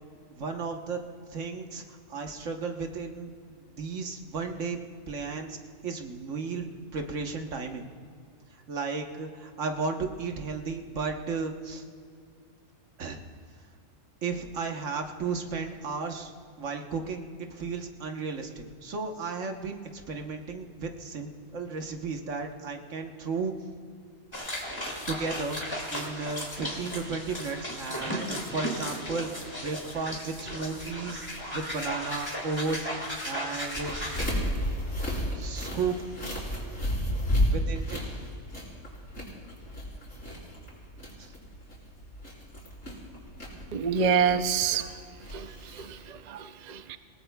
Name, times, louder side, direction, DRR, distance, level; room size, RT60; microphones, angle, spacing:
voice 1, 0.3-1.0 1.3-4.8 5.1-6.6 6.9-7.8 8.5-11.8 13.0-13.2 14.2-16.3 16.6-23.5 25.1-25.6 25.9-31.3 31.5-32.9 33.2-34.0 35.3-36.0 36.6-36.7 37.5-38.0 41.2-41.3, right 4 dB, 70° right, 4 dB, 1.5 m, -34 dB
sound 1, 24.3-34.3, equal, 20° left, 2.3 m, -35 dB
sound 2, 33.8-46.0, equal, 60° left, 4.8 m, -33 dB
voice 2, 43.7-45.0 45.3-47.0, right 6 dB, 50° right, 10 dB, 0.5 m, -28 dB
27.5 x 17.5 x 2.3 m, 2.1 s
omnidirectional pair, 1.3 m